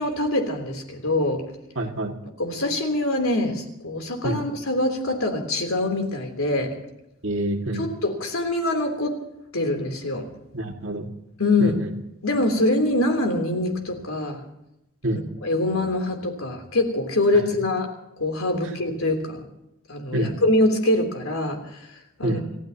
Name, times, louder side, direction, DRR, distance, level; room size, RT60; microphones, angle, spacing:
voice 1, 0.0-1.4 2.4-6.7 7.7-9.2 9.5-10.3 11.4-11.8 12.2-14.4 15.1-17.9 18.2-19.4 19.9-21.9 22.2-22.4, left 2 dB, 85° left, 3 dB, 3.4 m, -24 dB
voice 2, 1.8-2.2 4.2-4.4 7.2-7.9 10.5-11.1 11.6-11.9 15.0-15.2 20.1-20.3 22.2-22.4, right 1 dB, 65° right, 2 dB, 2.2 m, -26 dB
29.5 x 15.0 x 3.0 m, 0.86 s
head